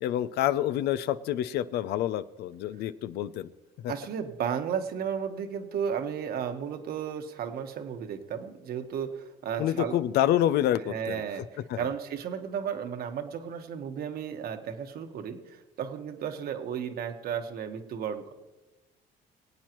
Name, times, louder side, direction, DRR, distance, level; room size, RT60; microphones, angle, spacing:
voice 1, 0.0-3.5 3.8-3.9 9.6-11.2 11.7-11.9, left 12 dB, 75° left, 15 dB, 0.5 m, -27 dB
voice 2, 3.9-10.0 10.9-18.3, right 8 dB, 65° right, 6 dB, 1.4 m, -34 dB
23.5 x 8.9 x 3.1 m, 1.1 s
cardioid pair, 110°, 17 cm